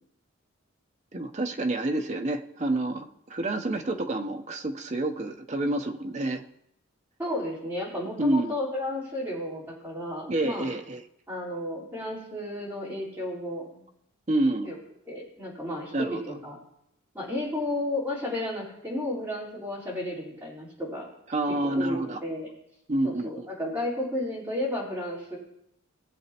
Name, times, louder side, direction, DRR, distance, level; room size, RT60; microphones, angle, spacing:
voice 1, 1.1-6.4 8.2-8.5 10.3-11.0 14.3-14.7 15.9-16.2 21.3-22.2 22.9-23.5, right 2 dB, 30° right, 5 dB, 0.7 m, -28 dB
voice 2, 7.2-10.7 11.3-13.8 14.6-14.8 15.1-16.6 17.1-21.1 21.6-22.5 23.0-25.4, left 1 dB, 10° right, -8 dB, 3.8 m, -33 dB
19.5 x 7.9 x 2.9 m, 0.79 s
head